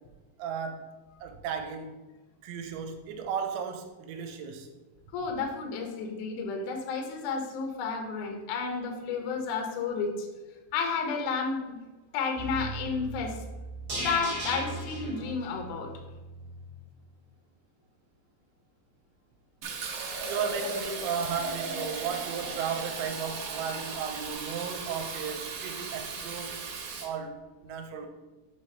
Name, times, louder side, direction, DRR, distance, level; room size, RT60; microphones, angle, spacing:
voice 1, 0.4-0.8 1.2-2.0 2.4-4.7 20.0-26.6 27.0-28.1, right 6 dB, 90° right, 5 dB, 2.9 m, -35 dB
voice 2, 5.1-10.3 10.7-11.8 12.1-13.4 14.0-15.9, left 5 dB, 85° left, 2 dB, 1.8 m, -31 dB
sound 1, 12.4-16.6 16.9-17.0, right 1 dB, 55° right, 1.1 m, -37 dB
Fill (with liquid), 19.6-27.1, right 4 dB, 70° right, 2.0 m, -36 dB
7.0 x 3.3 x 5.6 m, 1.2 s
omnidirectional pair, 5.1 m